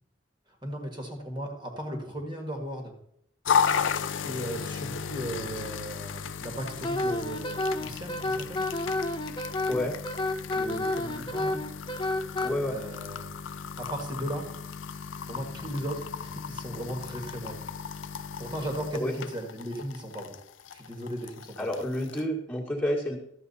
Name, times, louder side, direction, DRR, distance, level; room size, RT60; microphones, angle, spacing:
voice 1, 0.6-2.9 4.2-8.7 10.5-11.6 12.7-13.3 13.8-14.5 15.3-17.6 18.4-20.4 20.7-21.8, equal, 25° right, 2 dB, 1.6 m, -36 dB
sound 1, 3.4-22.2, left 6 dB, 75° left, 0.5 m, -35 dB
Wind instrument woodwind instrument, 6.8-12.5, left 2 dB, 25° left, 0.6 m, -30 dB
voice 2, 12.4-12.8 18.9-19.1 21.6-23.2, left 1 dB, 10° left, -3 dB, 1.7 m, -29 dB
12.5 x 7.7 x 4.1 m, 0.71 s
head